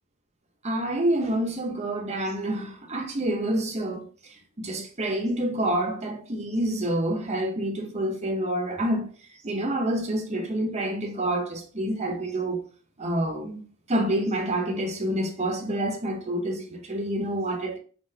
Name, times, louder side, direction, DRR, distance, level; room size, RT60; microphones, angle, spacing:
voice 1, 0.6-4.0 4.6-9.1 9.4-12.6 13.0-13.6 13.9-17.8, right 1 dB, 30° right, 0.8 m, -27 dB
4.0 x 3.8 x 2.8 m
head